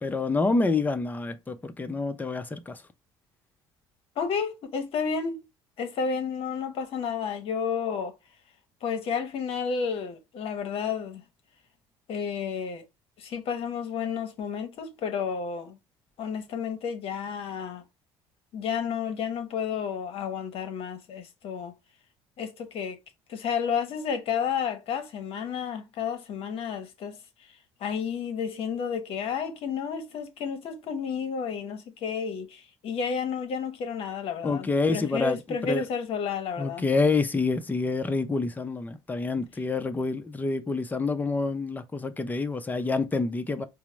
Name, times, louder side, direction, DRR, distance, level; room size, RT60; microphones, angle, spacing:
voice 1, 0.0-2.8 34.4-35.9 36.6-43.7, left 3 dB, 15° left, 0.5 m, -27 dB
voice 2, 4.2-5.4 5.8-8.1 8.8-11.2 12.1-12.9 13.2-15.8 16.2-17.8 18.5-21.7 22.4-23.0 23.3-27.2 27.8-36.8, left 6 dB, 60° left, 0.9 m, -31 dB
4.5 x 2.0 x 3.0 m
supercardioid pair, 80°, 11 cm